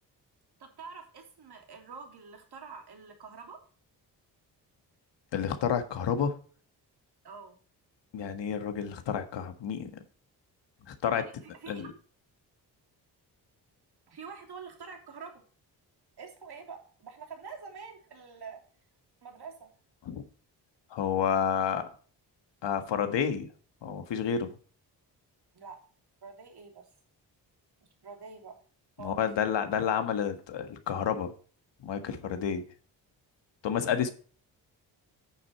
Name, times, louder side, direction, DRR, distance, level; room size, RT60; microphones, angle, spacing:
voice 1, 0.6-3.6 7.2-7.6 11.1-11.9 14.1-15.4 16.2-18.6 19.2-19.7 25.5-25.8 26.2-26.9 28.0-28.5 29.0-29.2, right 5 dB, 60° right, 3 dB, 3.2 m, -46 dB
voice 2, 5.3-6.3 8.1-10.0 10.9-11.2 11.7-11.9 20.0-20.2 20.9-21.9 22.6-23.5 23.8-24.5 29.0-31.3 31.8-32.6 33.6-34.1, left 7 dB, 75° left, 8 dB, 1.6 m, -30 dB
9.4 x 6.8 x 4.3 m, 0.42 s
cardioid pair, 60°, 43 cm